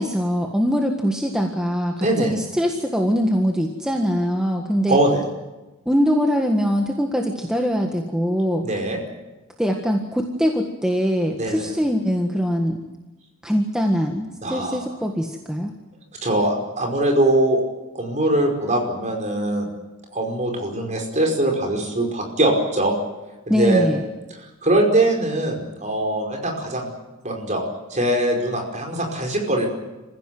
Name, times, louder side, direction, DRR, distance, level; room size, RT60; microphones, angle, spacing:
voice 1, 0.0-5.0 5.8-8.7 9.6-12.8 13.4-15.7 23.5-24.0, equal, 5° right, 2 dB, 1.6 m, -22 dB
voice 2, 2.0-2.3 4.9-5.2 8.6-9.0 11.4-11.7 14.4-14.8 16.2-17.6 17.9-19.7 20.1-22.9 23.5-23.9 24.6-26.9 27.2-27.6 27.9-29.7, right 1 dB, 35° right, 2 dB, 5.1 m, -21 dB
26.5 x 15.5 x 9.4 m, 1.1 s
head